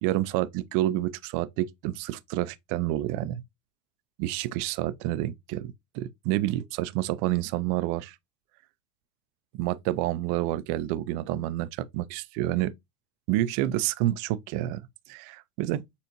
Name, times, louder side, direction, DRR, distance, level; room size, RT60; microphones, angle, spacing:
voice 1, 0.0-3.4 4.2-8.1 9.6-12.7 13.3-14.8 15.1-15.8, right 15 dB, 40° right, 0.5 m, -28 dB
6.8 x 2.5 x 2.9 m
hypercardioid pair, 110°, 48 cm